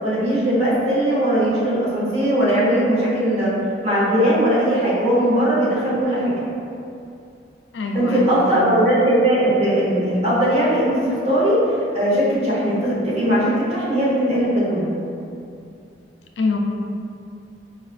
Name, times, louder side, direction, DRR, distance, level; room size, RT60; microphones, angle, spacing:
voice 1, 0.0-3.5 3.8-6.3 7.9-11.6 11.9-14.9, right 1 dB, 35° right, -8 dB, 1.0 m, -19 dB
voice 2, 7.7-8.7 16.4-16.6, left 3 dB, 70° left, 2 dB, 0.4 m, -25 dB
4.8 x 2.3 x 2.4 m, 2.6 s
head